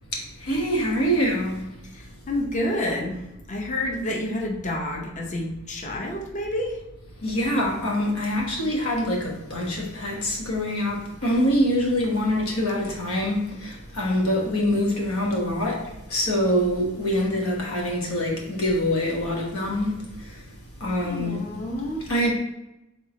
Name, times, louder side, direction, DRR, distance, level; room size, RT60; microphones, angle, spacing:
voice 1, 0.1-1.8 7.2-20.5 20.8-21.5 22.1-22.3, equal, 90° left, 1.2 m, -25 dB
voice 2, 2.3-3.2 3.5-6.8 21.0-22.1, left 1 dB, 35° left, 0.7 m, -28 dB
3.7 x 3.3 x 4.1 m
head